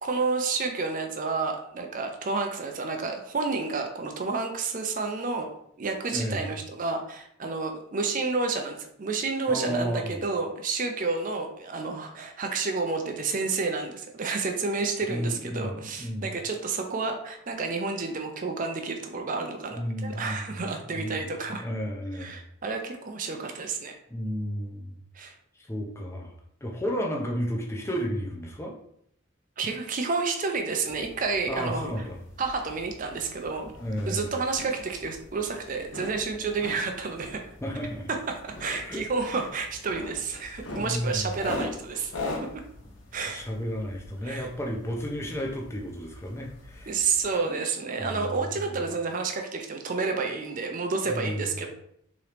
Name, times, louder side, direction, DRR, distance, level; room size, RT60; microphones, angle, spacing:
voice 1, 0.0-5.5 5.8-21.7 22.1-24.0 25.1-25.3 29.6-31.9 32.4-33.7 34.0-37.4 38.1-42.1 42.5-42.6 43.1-43.5 44.2-44.5 46.9-51.7, right 4 dB, 40° right, 4 dB, 0.5 m, -30 dB
voice 2, 6.1-6.5 9.5-10.2 15.1-16.3 19.7-20.7 20.9-21.2 21.6-22.4 24.1-24.9 25.7-26.3 26.6-28.7 31.5-32.2 33.8-34.3 37.6-38.1 38.8-39.0 40.8-41.3 43.3-47.1 47.9-48.4 51.1-51.4, equal, 15° left, 0 dB, 0.6 m, -32 dB
sound 1, 30.8-47.3, left 2 dB, 70° left, 0.9 m, -42 dB
3.7 x 3.0 x 3.3 m, 0.70 s
head